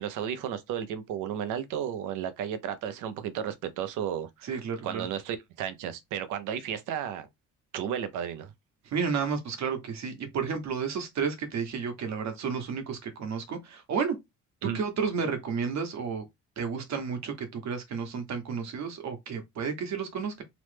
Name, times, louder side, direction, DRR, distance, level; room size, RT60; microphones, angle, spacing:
voice 1, 0.0-7.3 7.7-8.5 14.6-14.8, right 9 dB, 90° right, 0.6 m, -33 dB
voice 2, 4.4-5.1 8.8-14.2 14.6-16.2 16.6-20.4, right 6 dB, 65° right, 1.0 m, -32 dB
3.0 x 2.0 x 3.2 m
cardioid pair, 90°, 30 cm